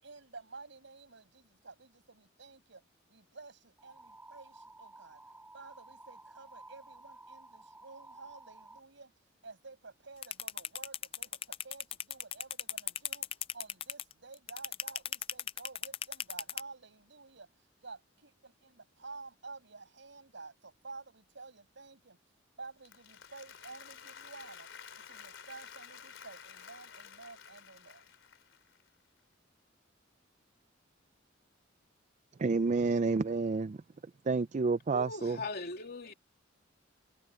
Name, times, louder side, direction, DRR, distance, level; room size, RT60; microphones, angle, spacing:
voice 1, 0.0-2.8 3.1-5.2 5.5-9.1 9.4-17.5 17.8-22.2 22.6-24.7 25.1-28.1, right 3 dB, 65° right, 6.3 m, -51 dB
sound 1, 3.8-8.8, right 2 dB, 10° right, 7.6 m, -54 dB
sound 2, 10.2-16.6, left 10 dB, 30° left, 0.4 m, -36 dB
Applause, 22.6-28.9, left 7 dB, 70° left, 4.1 m, -52 dB
voice 2, 32.4-33.8 34.3-35.4, right 4 dB, 40° right, 0.4 m, -29 dB
voice 3, 34.9-36.1, left 3 dB, 55° left, 3.1 m, -39 dB
head